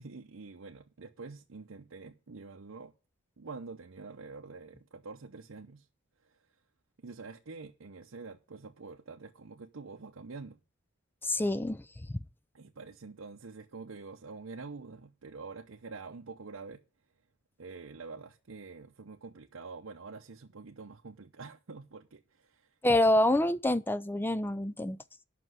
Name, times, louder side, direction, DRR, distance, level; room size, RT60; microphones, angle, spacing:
voice 1, 0.0-2.9 3.4-5.9 6.2-6.4 7.0-10.6 12.5-16.8 17.6-22.8, right 4 dB, 75° right, 0.8 m, -46 dB
voice 2, 11.2-11.8 22.8-25.0, left 1 dB, 10° left, 0.4 m, -26 dB
7.7 x 6.0 x 7.9 m
head